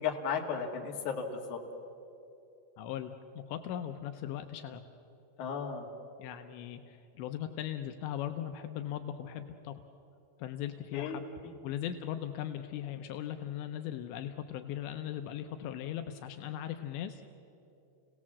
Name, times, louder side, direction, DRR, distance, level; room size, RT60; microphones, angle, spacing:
voice 1, 0.0-1.6 5.4-5.9 10.9-11.5, left 6 dB, 50° left, 0 dB, 2.7 m, -35 dB
voice 2, 2.8-4.8 6.2-9.7 10.4-11.2 11.6-17.2, left 10 dB, 80° left, 7 dB, 2.9 m, -39 dB
29.0 x 18.0 x 7.4 m, 2.7 s
omnidirectional pair, 5.2 m